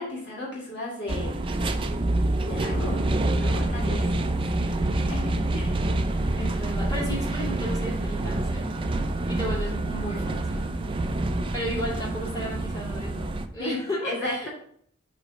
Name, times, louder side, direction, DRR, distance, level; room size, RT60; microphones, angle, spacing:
voice 1, 0.0-1.3 2.5-3.0 3.3-4.1 4.9-5.8 13.6-13.8 14.0-14.5, left 2 dB, 55° left, -4 dB, 1.9 m, -34 dB
sound 1, 1.1-13.5, right 2 dB, 25° right, 0.4 m, -27 dB
voice 2, 2.7-5.0 6.3-8.7 9.3-10.7 11.5-14.5, equal, 20° left, -6 dB, 2.6 m, -35 dB
6.6 x 3.8 x 5.1 m, 0.62 s
head